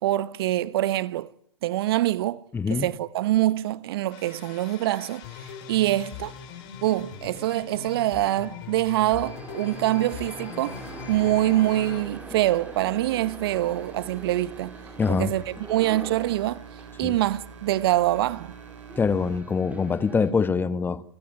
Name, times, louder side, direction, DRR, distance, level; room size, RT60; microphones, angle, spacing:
voice 1, 0.0-1.3 1.6-2.4 2.7-6.3 6.8-10.8 11.1-14.7 15.1-16.6 17.0-18.5, right 15 dB, 55° right, 1.2 m, -25 dB
voice 2, 2.5-2.9 15.0-15.3 17.0-17.1 19.0-21.0, left 5 dB, 15° left, 1.3 m, -24 dB
sound 1, 4.1-12.0, left 7 dB, 45° left, 7.2 m, -40 dB
sound 2, 9.1-20.3, right 2 dB, 10° right, 5.8 m, -44 dB
sound 3, 10.6-19.4, right 6 dB, 80° right, 5.1 m, -45 dB
29.5 x 20.0 x 9.3 m
hypercardioid pair, 110°, 15 cm